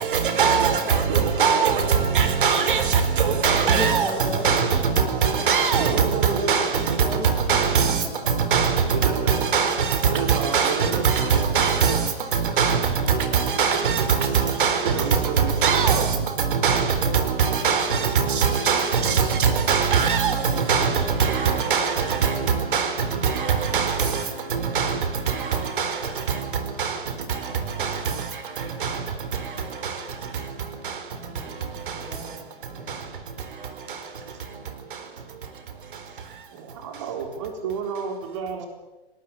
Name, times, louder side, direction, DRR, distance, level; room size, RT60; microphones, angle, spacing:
voice 1, 0.4-1.8 2.1-4.1 4.4-4.7 5.2-7.1 7.5-8.0 8.5-8.7 9.0-9.7 10.3-10.8 11.0-12.0 12.6-12.8 13.1-14.8 15.6-16.1 16.6-16.8 17.4-20.9 21.2-22.3 22.7-22.9 23.2-23.3 23.7-24.1 24.8-24.9 25.8-25.9 26.8-26.9 27.8-27.9, right 6 dB, 50° right, 4.0 m, -21 dB
voice 2, 1.1-1.7 5.8-6.7 8.9-9.3 10.1-11.1 14.8-16.2 18.7-19.2 36.5-38.7, right 5 dB, 30° right, 3.8 m, -31 dB
voice 3, 3.6-5.5 7.0-7.7 8.0-8.3 31.1-33.2, left 2 dB, ahead, 1.0 m, -37 dB
23.5 x 19.0 x 8.7 m
hypercardioid pair, 180°, 32 cm